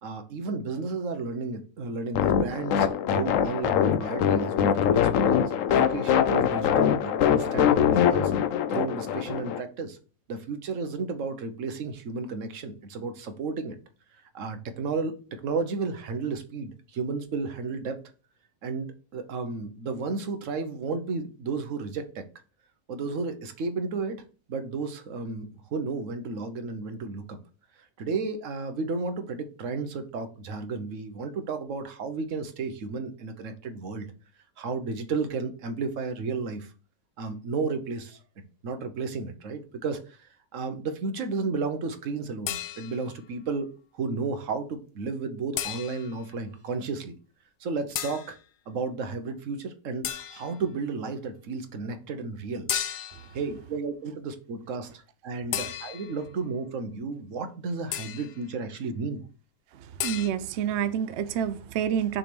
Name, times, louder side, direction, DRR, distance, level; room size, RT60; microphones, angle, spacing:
voice 1, 0.0-8.3 8.7-10.0 10.3-13.8 14.3-18.0 18.6-22.2 22.9-24.2 24.5-27.4 28.0-34.1 34.6-36.7 37.2-38.2 38.6-40.0 40.5-47.1 47.6-48.4 48.7-52.7 53.3-59.2, right 4 dB, 55° right, 1.1 m, -33 dB
sound 1, 2.1-9.6, left 8 dB, 65° left, 0.9 m, -23 dB
sound 2, 42.5-43.2 45.6-46.2 48.0-48.3 50.0-50.6 52.7-53.3 55.5-56.2 57.9-58.4 60.0-60.3, left 10 dB, 85° left, 1.2 m, -33 dB
voice 2, 60.0-62.2, right 9 dB, 75° right, 0.6 m, -28 dB
6.2 x 3.4 x 5.9 m
omnidirectional pair, 1.7 m